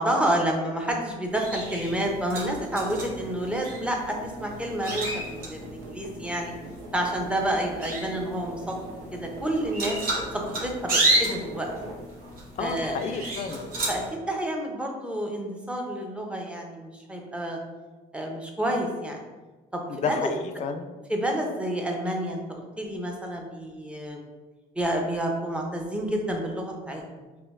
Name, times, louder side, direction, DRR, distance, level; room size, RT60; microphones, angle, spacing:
voice 1, 0.0-6.5 6.9-8.8 9.1-10.0 10.3-11.7 12.6-13.0 13.9-14.0 14.3-17.6 18.1-19.2 19.7-19.8 20.1-20.3 21.1-24.2 24.8-27.3, right 1 dB, 5° right, 1 dB, 0.6 m, -29 dB
sound 1, 1.3-14.1, right 1 dB, 60° right, 1.1 m, -32 dB
sound 2, 1.8-12.3 12.7-12.8, right 2 dB, 85° right, 0.7 m, -44 dB
voice 2, 12.6-13.7 19.9-21.0, left 5 dB, 45° left, 7 dB, 0.4 m, -31 dB
4.3 x 2.7 x 2.5 m, 1.2 s
cardioid pair, 110°, 17 cm